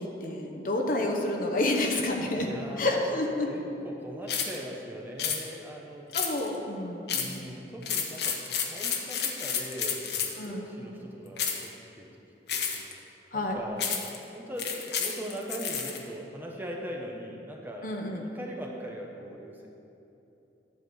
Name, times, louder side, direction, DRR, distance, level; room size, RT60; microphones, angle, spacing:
voice 1, 0.0-2.5 2.8-3.5 6.1-7.5 10.4-10.7 13.3-13.6 17.8-18.3, left 2 dB, 50° left, 2 dB, 1.0 m, -29 dB
voice 2, 2.3-3.0 3.5-6.1 7.1-12.1 12.5-13.9 14.3-19.7, equal, 10° right, -1 dB, 0.9 m, -40 dB
sound 1, 4.3-4.6 5.2-5.4 6.1-6.6 7.1-7.4 7.8-10.4 11.4-11.7 12.5-12.9 13.8-14.2 14.6-16.0, left 7 dB, 70° left, 1.0 m, -30 dB
11.0 x 4.4 x 7.9 m, 3.0 s
head